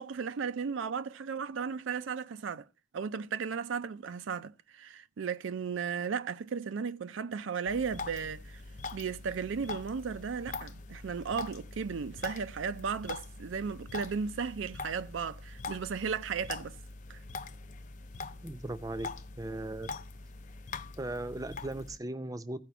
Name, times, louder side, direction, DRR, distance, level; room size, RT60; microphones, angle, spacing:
voice 1, 0.0-2.7 2.9-8.6 8.9-16.8 17.1-17.2, right 6 dB, 85° right, 0.4 m, -35 dB
sound 1, 7.7-22.0, left 3 dB, 40° left, 0.5 m, -43 dB
voice 2, 18.4-19.1 19.4-19.9 21.0-22.6, right 1 dB, 20° right, 0.5 m, -37 dB
14.5 x 5.0 x 4.5 m
head